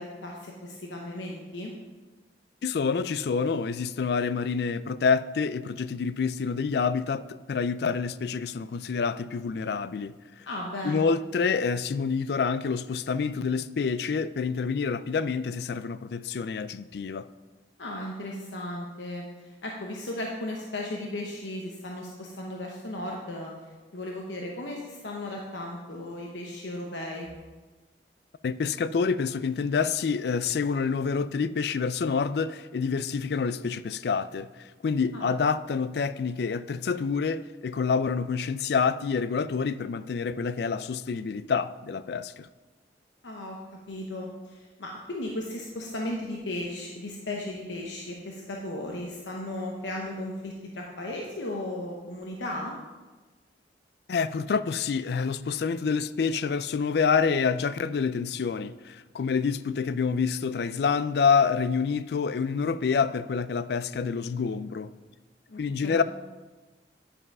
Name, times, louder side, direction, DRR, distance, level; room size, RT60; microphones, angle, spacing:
voice 1, 0.0-1.7 10.4-11.1 17.8-27.3 35.1-35.3 43.2-43.6 43.9-52.7 65.5-66.0, left 1 dB, 85° left, 1.0 m, -36 dB
voice 2, 2.6-10.5 10.8-17.3 28.4-42.5 54.1-64.9 65.6-66.0, left 5 dB, 60° left, 0.3 m, -27 dB
9.8 x 5.5 x 5.4 m
head